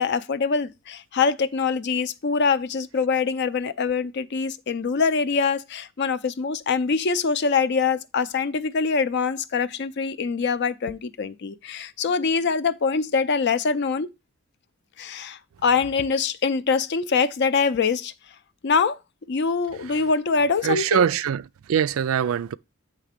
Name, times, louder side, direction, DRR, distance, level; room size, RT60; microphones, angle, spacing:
voice 1, 0.0-14.1 15.0-18.1 18.6-19.0 19.3-21.0, left 5 dB, 55° left, 0.5 m, -24 dB
voice 2, 20.6-22.5, right 8 dB, 85° right, 0.4 m, -23 dB
8.3 x 3.3 x 5.0 m
head